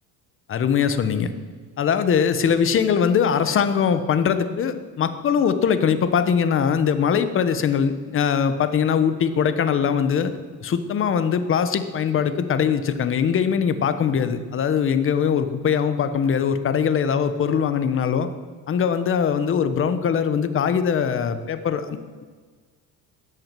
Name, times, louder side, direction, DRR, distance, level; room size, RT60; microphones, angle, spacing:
voice 1, 0.5-1.3 1.8-10.3 10.6-18.3 18.7-22.2, left 7 dB, 35° left, 11 dB, 1.2 m, -21 dB
13.5 x 8.8 x 9.2 m, 1.5 s
cardioid pair, 135°, 36 cm